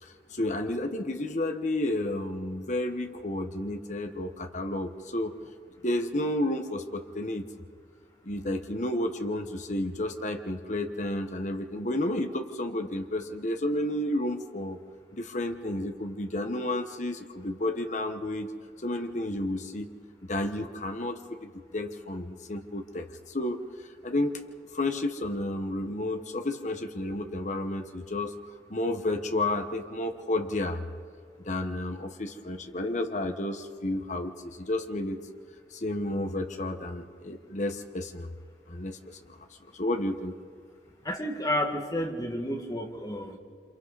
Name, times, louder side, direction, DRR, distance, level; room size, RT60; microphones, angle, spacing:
voice 1, 0.0-5.3 5.8-7.4 8.2-14.8 15.1-18.5 18.8-19.9 20.3-23.6 24.0-24.4 24.7-28.3 28.7-30.8 31.4-35.2 35.7-38.3 38.7-39.4 39.7-40.3, left 1 dB, 45° left, 6 dB, 1.2 m, -31 dB
voice 2, 41.0-43.4, left 1 dB, 20° left, 2 dB, 2.0 m, -31 dB
28.5 x 27.0 x 4.1 m, 2.1 s
head